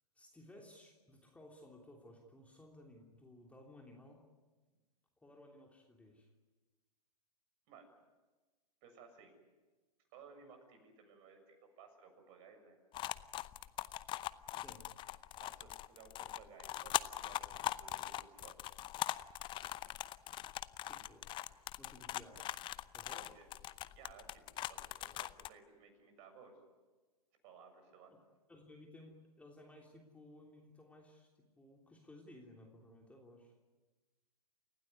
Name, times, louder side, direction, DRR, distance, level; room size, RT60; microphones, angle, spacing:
voice 1, 0.1-4.2 5.2-6.3 14.5-14.8 20.9-21.3 21.8-22.4 22.9-23.4 28.5-33.5, left 1 dB, 5° left, 0 dB, 3.2 m, -58 dB
voice 2, 8.8-9.3 10.1-12.8 15.4-18.6 23.1-23.5 23.9-24.4 24.7-26.6 27.4-28.1, right 5 dB, 40° right, 6 dB, 7.1 m, -59 dB
sound 1, 12.9-25.5, left 14 dB, 25° left, 0.7 m, -41 dB
29.5 x 16.5 x 9.7 m, 1.3 s
hypercardioid pair, 115°, 20 cm